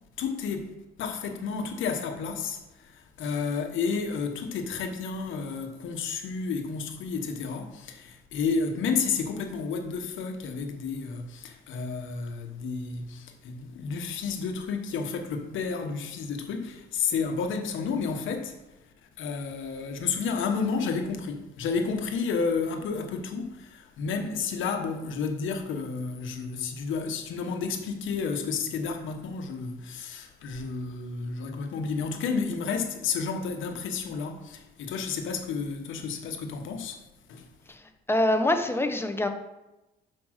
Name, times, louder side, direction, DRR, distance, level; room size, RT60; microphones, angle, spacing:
voice 1, 0.2-18.5 19.2-37.0 37.3-37.4, left 5 dB, 80° left, 1.1 m, -31 dB
voice 2, 38.1-39.3, left 1 dB, 10° left, 0.9 m, -24 dB
6.1 x 4.8 x 6.3 m
cardioid pair, 90°, 20 cm